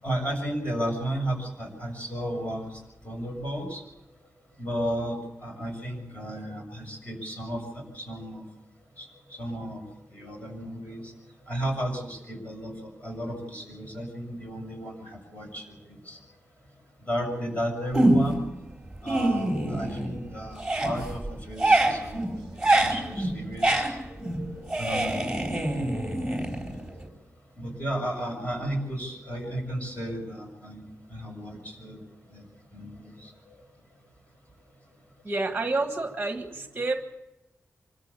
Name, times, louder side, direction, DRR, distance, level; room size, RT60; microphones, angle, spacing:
voice 1, 0.0-2.8 3.0-3.8 4.6-8.4 9.0-9.8 10.1-11.1 11.5-16.2 17.0-18.4 19.0-22.4 22.7-23.8 24.8-25.5 26.7-26.8 27.6-30.8 31.1-32.0 32.3-32.4 32.7-33.5, right 1 dB, 25° left, 2 dB, 7.0 m, -33 dB
sound 1, 17.9-18.5 18.9-20.2 20.5-27.0, right 1 dB, 5° right, 4.3 m, -25 dB
voice 2, 35.2-37.0, right 3 dB, 20° right, 6 dB, 1.6 m, -29 dB
25.5 x 14.0 x 8.4 m, 0.97 s
wide cardioid pair, 145°, 5 cm